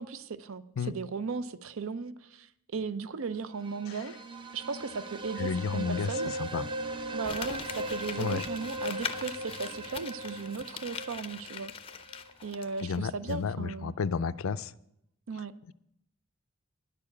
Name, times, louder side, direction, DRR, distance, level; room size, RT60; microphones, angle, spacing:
voice 1, 0.0-4.1 4.5-6.3 7.1-11.7 12.4-13.9 15.3-15.5, right 5 dB, 80° right, 15 dB, 0.6 m, -37 dB
sound 1, 3.5-12.3, right 1 dB, 20° right, 0.5 m, -39 dB
voice 2, 5.4-6.7 8.2-8.4 12.8-14.7, left 5 dB, 80° left, 15 dB, 0.4 m, -32 dB
Crumpling crinkling, 7.2-13.0 13.3-13.4, left 7 dB, 25° left, 0.4 m, -41 dB
10.5 x 6.8 x 8.3 m, 0.78 s
head